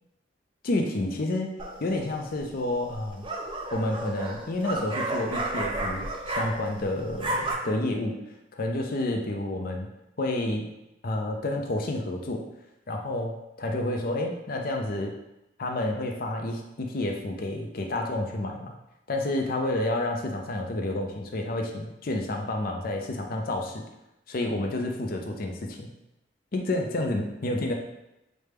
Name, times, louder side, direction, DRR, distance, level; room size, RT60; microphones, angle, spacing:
voice 1, 0.6-3.3 3.7-8.2 8.5-9.9 10.2-10.7 11.0-12.5 12.9-15.1 15.6-18.7 19.1-23.8 24.3-25.9 26.5-27.7, left 1 dB, 50° left, 3 dB, 0.6 m, -29 dB
sound 1, 1.6-2.0 2.9-6.8 7.1-7.5, right 2 dB, 30° right, 0.5 m, -32 dB
6.2 x 2.2 x 3.4 m, 0.90 s
head